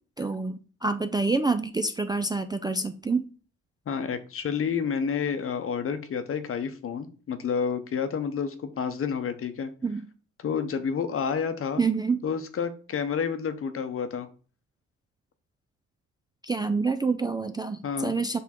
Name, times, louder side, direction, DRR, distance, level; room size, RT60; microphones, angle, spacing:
voice 1, 0.2-3.2 9.8-10.1 11.8-12.2 16.4-18.4, right 4 dB, 15° right, 0.3 m, -27 dB
voice 2, 3.9-9.7 10.4-11.8 12.2-14.3 17.8-18.1, left 6 dB, 45° left, 0.8 m, -29 dB
6.0 x 3.6 x 4.3 m
cardioid pair, 90°, 30 cm